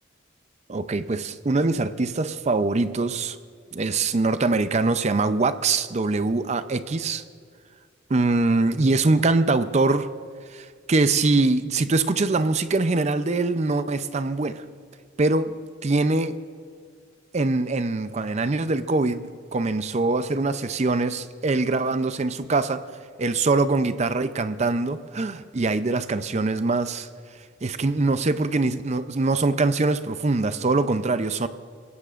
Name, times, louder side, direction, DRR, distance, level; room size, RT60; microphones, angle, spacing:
voice 1, 0.7-3.4 3.7-7.2 8.1-10.1 10.4-14.6 15.2-16.4 17.3-31.5, right 3 dB, 35° right, 0.5 m, -23 dB
26.5 x 16.5 x 2.5 m
head